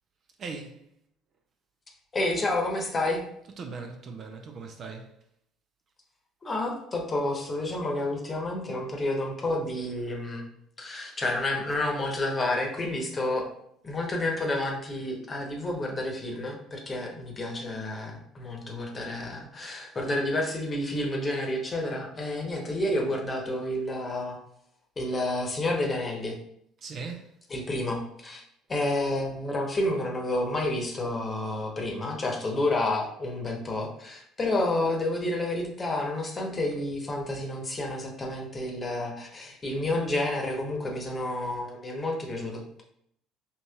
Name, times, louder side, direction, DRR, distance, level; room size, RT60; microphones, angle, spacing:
voice 1, 0.4-0.9 3.4-5.1 26.8-27.3, right 4 dB, 45° right, 0.5 m, -39 dB
voice 2, 2.1-3.2 6.4-10.4 10.8-13.5 13.8-24.4 25.0-26.4 27.5-28.4 28.7-42.8, left 1 dB, 30° left, 1.0 m, -30 dB
5.1 x 2.9 x 2.3 m
figure-of-eight pair, 60°, 0 cm